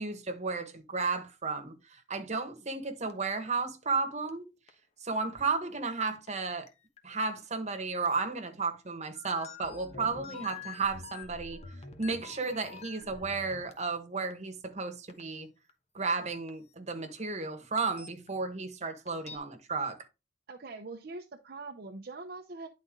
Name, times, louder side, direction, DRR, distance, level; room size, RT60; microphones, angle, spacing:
voice 1, 0.0-4.5 5.0-6.7 7.0-11.6 12.0-15.5 15.9-20.0, right 4 dB, 40° right, 1.3 m, -33 dB
sound 1, 3.1-3.2 4.3-4.4 4.7-4.8 5.4-5.5 5.9-6.7 7.0-7.1 8.1-8.2 9.1-14.0 14.3-14.4 15.1-15.2 15.7-15.8 16.1-16.2 16.5-16.6 17.2-17.3 17.8-18.3 19.1-19.4, left 4 dB, 40° left, 1.2 m, -46 dB
voice 2, 20.5-22.7, right 3 dB, 55° right, 0.7 m, -43 dB
10.5 x 4.2 x 3.7 m
head